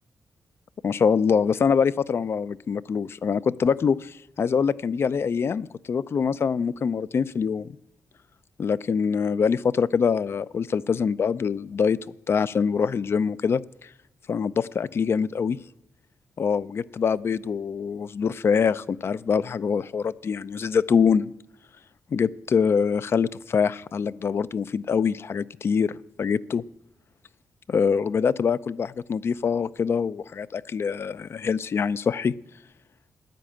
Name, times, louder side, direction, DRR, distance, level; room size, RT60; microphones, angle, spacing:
voice 1, 0.8-7.7 8.6-12.0 12.3-13.6 14.3-15.6 16.4-21.3 22.1-26.6 27.7-32.3, left 6 dB, 50° left, 17 dB, 0.5 m, -24 dB
14.5 x 10.5 x 8.7 m, 0.83 s
wide cardioid pair, 115°, 5 cm